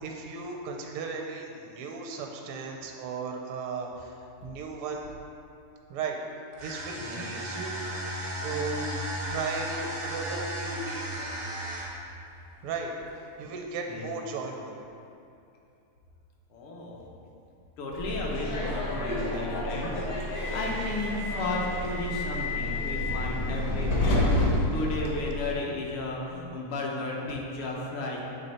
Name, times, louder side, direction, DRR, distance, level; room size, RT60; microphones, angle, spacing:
voice 1, 0.0-4.1 4.4-5.1 5.9-6.2 6.6-8.9 9.3-11.1 12.6-12.9 13.4-14.8, right 4 dB, 85° right, 2 dB, 1.5 m, -36 dB
sound 1, 6.5-12.1, right 1 dB, 65° right, 0.4 m, -35 dB
voice 2, 7.0-7.3 13.9-14.1 16.5-17.1 17.8-19.9 20.3-28.2, left 2 dB, 80° left, -2 dB, 1.7 m, -34 dB
Subway metro underground, 17.9-25.5, left 1 dB, 60° left, 1.0 m, -29 dB
6.7 x 3.4 x 4.2 m, 2.6 s
omnidirectional pair, 2.4 m